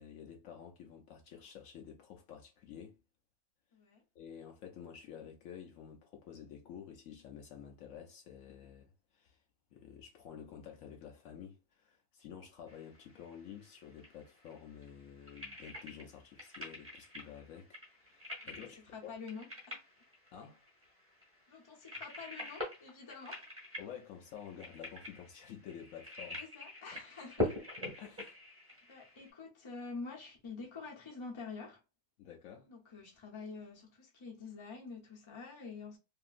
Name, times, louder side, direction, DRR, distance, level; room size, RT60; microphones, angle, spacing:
voice 1, 0.0-3.0 4.1-9.4 9.7-19.1 20.3-20.6 23.8-26.5 26.9-27.0 28.0-28.4 32.2-32.7, left 8 dB, 70° left, 0.9 m, -50 dB
voice 2, 3.7-4.0 18.6-19.8 21.5-23.5 26.3-27.5 28.9-31.8 32.6-36.0, left 4 dB, 30° left, 0.6 m, -47 dB
sound 1, 12.7-29.3, left 2 dB, 10° right, 0.9 m, -44 dB
2.8 x 2.5 x 2.4 m
omnidirectional pair, 1.6 m